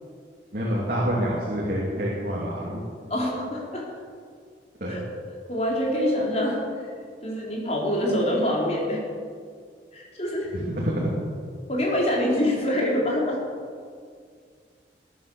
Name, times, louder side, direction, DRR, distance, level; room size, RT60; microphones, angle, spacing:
voice 1, 0.5-2.8 4.8-5.0 10.5-11.1, equal, 50° right, -5 dB, 3.2 m, -27 dB
voice 2, 3.1-3.8 4.9-5.0 5.5-6.9 7.2-9.0 9.9-10.5 11.7-13.4, left 1 dB, 35° left, -3 dB, 4.3 m, -25 dB
20.0 x 9.6 x 7.2 m, 2.1 s
head